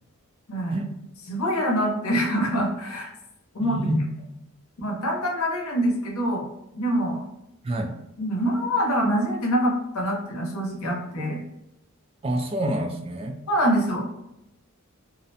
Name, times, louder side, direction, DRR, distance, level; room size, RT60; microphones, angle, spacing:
voice 1, 1.3-3.1 3.5-3.8 4.8-6.5 6.7-7.2 8.2-11.4 13.5-14.0, equal, 70° left, 0 dB, 0.7 m, -25 dB
voice 2, 3.6-4.0 7.6-7.9 12.2-13.4, right 1 dB, 25° right, 4 dB, 0.3 m, -27 dB
2.5 x 2.1 x 2.7 m, 0.87 s
head